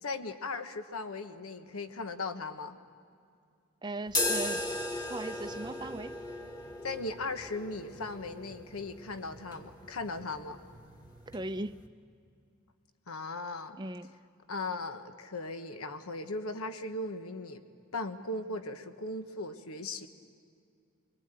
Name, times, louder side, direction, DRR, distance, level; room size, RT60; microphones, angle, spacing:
voice 1, 0.0-2.8 6.8-10.6 13.1-13.8 14.5-17.6 17.9-20.1, left 2 dB, 85° left, 8 dB, 1.2 m, -38 dB
voice 2, 3.8-4.7 5.1-6.2 11.3-11.8 13.8-14.1, right 2 dB, 20° right, 11 dB, 0.5 m, -38 dB
sound 1, 4.1-11.9, left 1 dB, 20° left, 1.5 m, -38 dB
24.0 x 24.0 x 9.0 m, 2.4 s
head